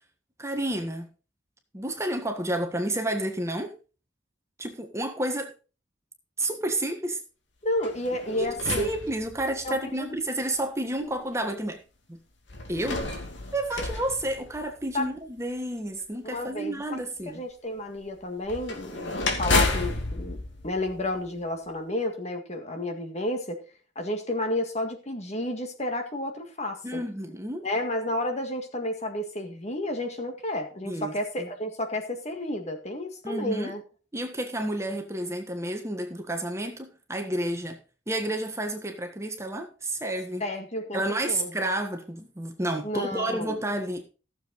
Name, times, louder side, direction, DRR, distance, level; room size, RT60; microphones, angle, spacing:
voice 1, 0.4-1.1 1.7-3.7 4.6-5.5 6.4-7.2 8.3-11.8 12.1-12.2 12.7-13.0 13.5-17.4 26.8-27.7 30.8-31.1 31.4-31.5 33.2-33.7 34.1-37.8 38.1-40.5 40.9-44.0, right 1 dB, 15° right, 5 dB, 1.4 m, -30 dB
voice 2, 7.6-8.9 9.6-10.1 11.0-11.1 14.9-15.1 16.2-17.0 17.3-23.6 24.0-27.0 27.6-33.8 40.4-41.0 41.3-41.6 42.8-43.6, left 1 dB, 40° left, 5 dB, 1.9 m, -31 dB
sound 1, 7.8-9.8 10.5-10.6 12.5-15.1 18.4-21.5, left 2 dB, 80° left, 2.6 m, -31 dB
15.0 x 7.4 x 4.1 m, 0.34 s
head